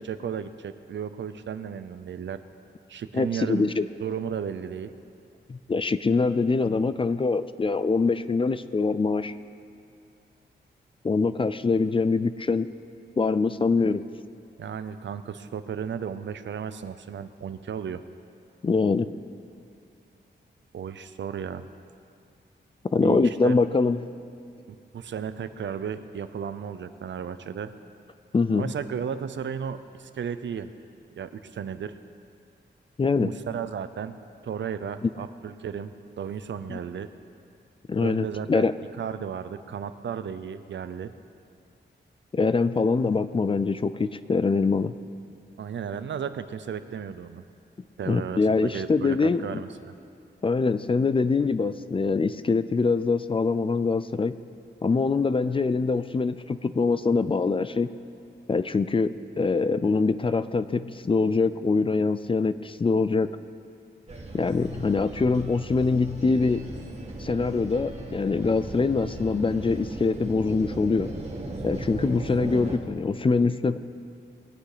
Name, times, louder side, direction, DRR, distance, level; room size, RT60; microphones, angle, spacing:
voice 1, 0.0-2.4 2.9-3.7 4.0-4.9 14.6-18.0 20.7-21.7 23.0-23.6 24.7-27.7 28.5-30.7 31.2-32.0 33.2-34.2 34.4-37.1 38.0-38.7 39.0-41.1 45.6-47.4 48.0-49.9, right 7 dB, 75° right, 12 dB, 0.6 m, -34 dB
voice 2, 3.1-3.9 5.5-9.3 11.0-12.7 13.2-14.0 18.6-19.1 22.9-24.0 28.3-28.7 33.0-33.3 35.0-35.1 36.7-36.8 37.9-38.7 42.3-44.9 48.1-49.6 50.4-54.4 54.8-57.9 58.5-63.3 64.3-66.7 67.2-71.1 71.6-73.8, left 4 dB, 30° left, 13 dB, 0.4 m, -24 dB
sound 1, 64.1-72.8, right 2 dB, 35° right, 1.9 m, -37 dB
21.0 x 8.3 x 5.0 m, 2.5 s
wide cardioid pair, 120°, 19 cm